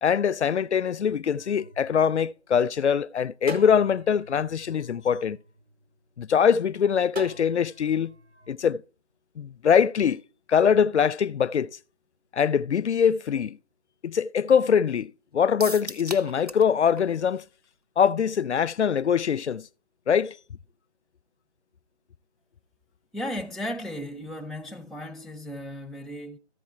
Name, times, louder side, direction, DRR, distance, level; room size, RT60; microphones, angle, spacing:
voice 1, 0.0-5.4 6.2-8.1 8.5-8.8 9.4-10.2 10.5-11.8 12.3-13.6 14.0-17.4 18.0-19.7 20.1-20.4, left 7 dB, 85° left, 0.5 m, -23 dB
sound 1, 1.4-2.8 3.5-6.0 7.1-8.5, right 3 dB, 65° right, 0.9 m, -44 dB
sound 2, 15.6-16.7 17.0-17.1 17.4-17.5, right 1 dB, 35° right, 0.7 m, -36 dB
voice 2, 23.1-26.4, equal, ahead, 0.4 m, -35 dB
14.0 x 4.7 x 4.3 m
figure-of-eight pair, 180°, 34 cm